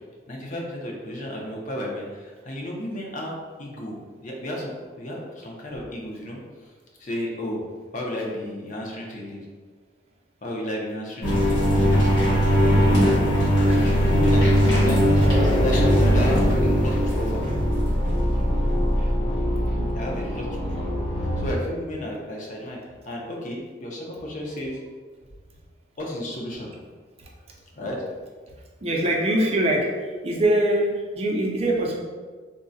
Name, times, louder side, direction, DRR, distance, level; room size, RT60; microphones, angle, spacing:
voice 1, 0.3-4.7 5.0-6.4 7.0-7.6 7.9-9.4 10.4-11.6 12.8-13.1 13.6-15.1 15.3-17.4 19.4-19.6 19.9-21.0 21.4-22.8 23.1-24.8 26.0-26.7 27.7-28.0, equal, 40° left, -2 dB, 0.5 m, -32 dB
sound 1, 11.2-21.5, equal, 65° left, 1.3 m, -20 dB
voice 2, 14.5-15.0 27.2-27.3 28.8-29.9 30.2-32.0, right 1 dB, 30° right, -1 dB, 0.4 m, -23 dB
3.6 x 2.1 x 2.6 m, 1.4 s
head